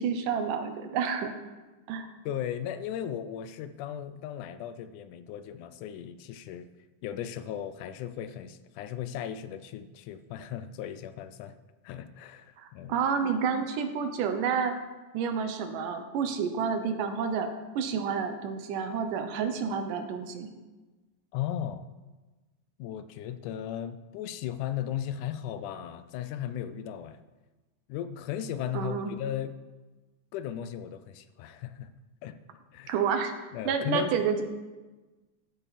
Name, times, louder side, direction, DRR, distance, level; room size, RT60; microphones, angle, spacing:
voice 1, 0.0-1.3 1.9-2.1 12.6-14.7 15.1-20.5 28.7-29.1 32.9-33.3 33.7-34.4, right 6 dB, 90° right, 7 dB, 2.6 m, -29 dB
voice 2, 2.3-6.7 7.0-11.6 11.8-13.0 21.3-21.9 22.8-27.2 27.9-29.5 30.3-31.9 32.2-32.4 32.7-33.0 33.5-34.1, left 10 dB, 80° left, 12 dB, 2.1 m, -36 dB
13.5 x 9.0 x 4.2 m, 1.2 s
omnidirectional pair, 3.6 m